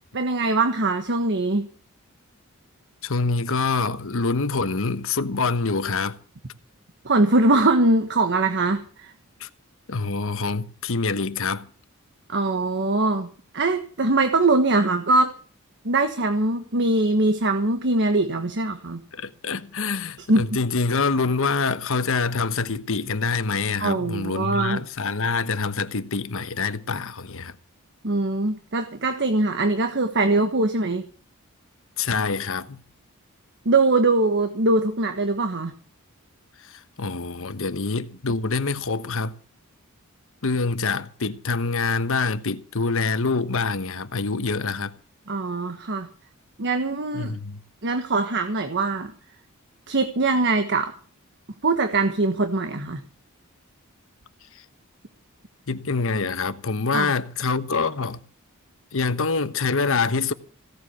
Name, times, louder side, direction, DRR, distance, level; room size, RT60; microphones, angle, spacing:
voice 1, 0.1-1.7 7.0-9.1 12.3-13.3 13.5-15.3 15.8-19.0 20.3-20.5 23.8-24.8 28.0-31.1 33.6-35.7 45.3-46.1 46.6-47.3 47.8-49.1 49.9-50.9 51.6-53.0 56.9-57.1, right 2 dB, 55° right, 1.3 m, -22 dB
voice 2, 3.0-6.2 9.4-9.5 9.9-11.7 19.1-27.6 32.0-32.8 36.6-39.3 40.4-45.0 47.1-47.6 55.7-58.2 58.9-60.3, left 4 dB, 65° left, 1.1 m, -25 dB
16.5 x 7.7 x 8.3 m
head